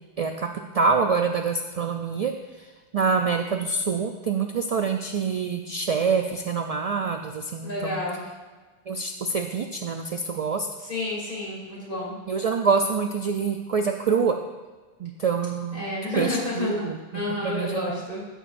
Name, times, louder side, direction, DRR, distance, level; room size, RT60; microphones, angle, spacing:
voice 1, 0.2-2.3 2.9-8.0 8.9-10.7 12.3-14.4 15.0-18.1, right 5 dB, 55° right, 4 dB, 0.4 m, -26 dB
voice 2, 7.6-8.2 10.8-12.2 15.7-16.9 17.1-18.3, left 2 dB, 60° left, -5 dB, 2.9 m, -30 dB
14.0 x 6.3 x 2.5 m, 1.3 s
omnidirectional pair, 1.0 m